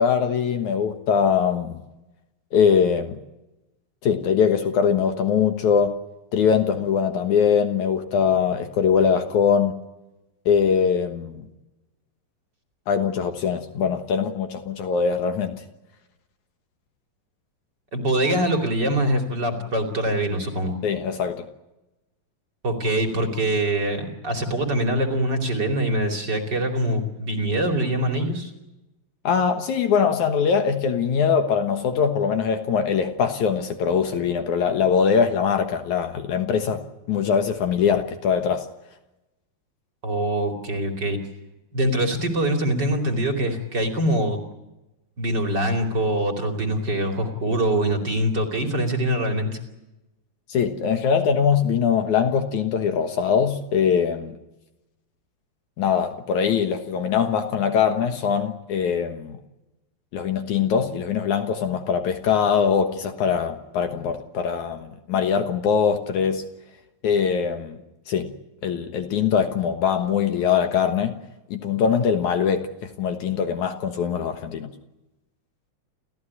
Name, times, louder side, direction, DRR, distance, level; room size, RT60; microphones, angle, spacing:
voice 1, 0.0-1.8 2.5-3.2 4.0-5.9 6.3-9.7 10.5-11.4 12.9-15.5 20.8-21.5 29.2-36.8 37.1-38.7 50.5-54.4 55.8-59.4 60.1-66.4 67.0-67.8 68.1-68.3 68.6-71.1 71.5-74.7, left 7 dB, 65° left, 7 dB, 2.5 m, -22 dB
voice 2, 17.9-20.7 22.6-28.5 40.0-41.2 41.7-44.4 45.2-49.5, right 1 dB, 30° right, 4 dB, 3.1 m, -24 dB
29.5 x 14.5 x 9.8 m, 0.99 s
omnidirectional pair, 4.0 m